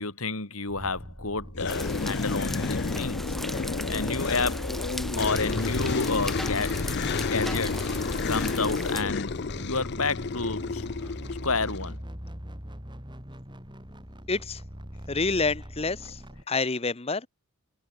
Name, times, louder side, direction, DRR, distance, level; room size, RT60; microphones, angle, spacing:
voice 1, 0.0-4.7 5.1-6.8 7.2-8.0 8.3-10.8 11.4-12.0, left 3 dB, 80° left, 4.4 m, -30 dB
sound 1, 0.7-16.4, equal, 20° right, 7.4 m, -41 dB
sound 2, 1.5-11.9, left 4 dB, 50° left, 0.6 m, -31 dB
sound 3, 1.7-9.0, equal, ahead, 1.8 m, -36 dB
voice 2, 14.3-14.6 15.1-16.2 16.5-17.2, left 3 dB, 25° left, 0.9 m, -27 dB
head